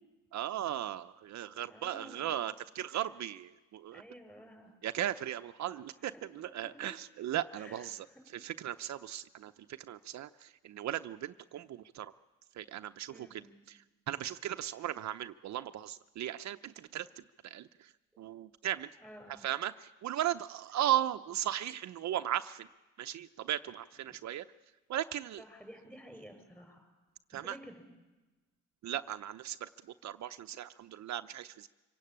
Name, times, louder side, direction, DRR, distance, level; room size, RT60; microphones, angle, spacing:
voice 1, 0.3-4.0 4.8-8.1 8.3-9.5 9.8-12.1 12.6-13.3 13.7-13.8 14.1-17.1 17.4-17.9 18.2-18.9 19.4-22.7 23.0-24.4 24.9-25.4 27.3-27.6 28.8-29.7 30.0-31.7, right 12 dB, 65° right, 9 dB, 0.7 m, -37 dB
voice 2, 1.7-2.4 3.9-4.7 6.0-6.2 6.6-6.9 7.6-8.2 13.1-13.6 18.9-19.5 24.1-24.2 25.4-26.9 27.4-27.8, equal, 5° left, 5 dB, 6.5 m, -52 dB
25.5 x 17.0 x 8.7 m, 1.2 s
cardioid pair, 90°, 30 cm